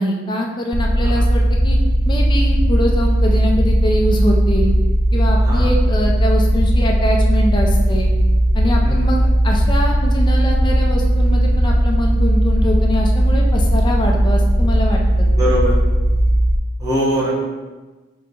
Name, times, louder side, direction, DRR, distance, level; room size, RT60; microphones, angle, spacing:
voice 1, 0.0-1.8 2.0-4.7 5.1-8.1 8.5-15.3, equal, 20° left, 0 dB, 0.6 m, -23 dB
sound 1, 0.7-16.6, equal, 40° right, 0.4 m, -16 dB
voice 2, 5.4-5.7 8.8-9.1 15.3-15.7 16.8-17.5, right 1 dB, 15° right, -6 dB, 1.0 m, -22 dB
3.9 x 2.9 x 4.6 m, 1.3 s
head